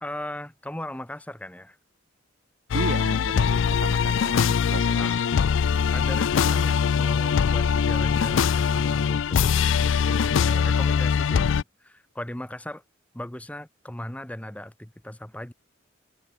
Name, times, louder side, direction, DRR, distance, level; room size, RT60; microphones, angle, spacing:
voice 1, 0.0-1.8 5.0-5.2 5.9-12.8 13.1-15.5, left 1 dB, 5° left, 1.0 m, -38 dB
sound 1, 2.7-11.6, left 6 dB, 70° left, 0.4 m, -22 dB
voice 2, 2.7-5.2, right 5 dB, 75° right, 0.5 m, -34 dB
head